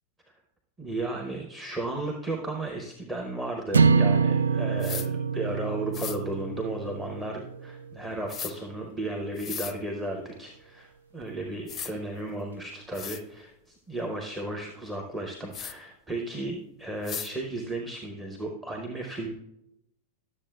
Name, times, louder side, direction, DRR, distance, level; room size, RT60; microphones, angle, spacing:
voice 1, 0.8-19.3, right 2 dB, 10° right, 1 dB, 0.9 m, -34 dB
sound 1, 3.7-8.1, right 5 dB, 70° right, 0.3 m, -25 dB
sound 2, 4.8-5.1 5.9-6.2 8.3-8.5 9.4-9.7 11.2-11.3 11.7-11.9 12.6-12.7 12.9-13.2 15.5-15.7 17.0-17.3, left 8 dB, 25° left, 0.5 m, -36 dB
12.0 x 7.2 x 2.3 m, 0.84 s
figure-of-eight pair, 90°, 0 cm